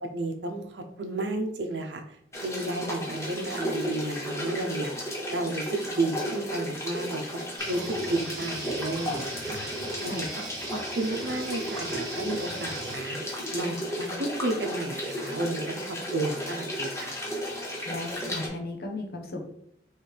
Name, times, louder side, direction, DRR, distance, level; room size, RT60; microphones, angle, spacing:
voice 1, 0.0-2.0 2.4-4.9 5.3-7.2 7.7-10.3 10.7-17.2, right 2 dB, 90° right, 5 dB, 0.7 m, -32 dB
sound 1, 2.3-18.5, equal, 15° left, 0.9 m, -34 dB
sound 2, 7.6-13.0, right 2 dB, 25° right, 1.1 m, -39 dB
voice 2, 10.0-10.3 17.9-19.5, left 2 dB, 60° left, 2 dB, 0.8 m, -36 dB
3.3 x 3.2 x 4.5 m, 0.73 s
head